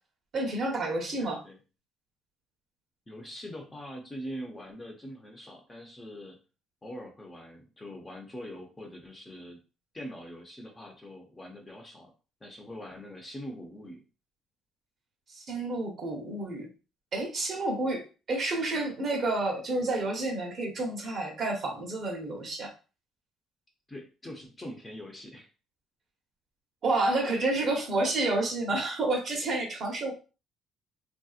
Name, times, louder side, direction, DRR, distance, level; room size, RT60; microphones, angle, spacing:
voice 1, 0.3-1.4 15.3-16.7 17.1-18.0 18.3-22.7 26.8-30.1, right 2 dB, 40° right, 1 dB, 0.9 m, -29 dB
voice 2, 1.2-1.6 3.1-6.4 6.8-9.6 9.9-12.1 12.4-14.0 23.9-25.5, equal, 15° left, 1 dB, 0.5 m, -43 dB
3.3 x 2.7 x 2.4 m, 0.34 s
cardioid pair, 160°, 0 cm